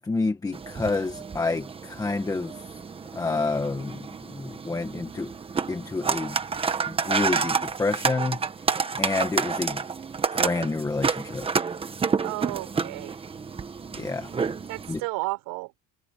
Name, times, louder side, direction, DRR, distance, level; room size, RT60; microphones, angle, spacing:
voice 1, 0.0-2.5 3.1-5.3 5.7-6.4 6.8-8.4 9.0-9.8 10.3-11.5 14.0-14.3 14.9-15.0, left 3 dB, 10° left, 1.3 m, -28 dB
sound 1, 0.5-15.0, right 5 dB, 15° right, 1.2 m, -30 dB
voice 2, 12.2-13.2 14.7-15.8, right 24 dB, 70° right, 6.7 m, -33 dB
cardioid pair, 155°, 35 cm